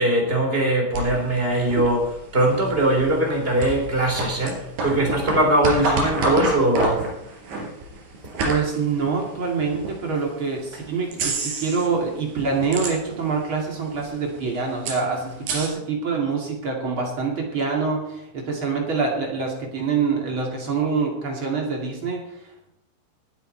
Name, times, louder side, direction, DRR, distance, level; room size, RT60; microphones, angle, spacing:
voice 1, 0.0-7.0 8.3-8.4, right 1 dB, 15° right, 1 dB, 2.9 m, -21 dB
sound 1, 0.9-10.0 10.5-10.6 11.1-12.0 12.3-13.4 13.7-13.8 13.9-15.7, right 2 dB, 70° right, 5.5 m, -28 dB
voice 2, 8.4-22.7, right 5 dB, 40° right, -1 dB, 2.0 m, -25 dB
20.0 x 9.0 x 4.5 m, 0.85 s
omnidirectional pair, 5.7 m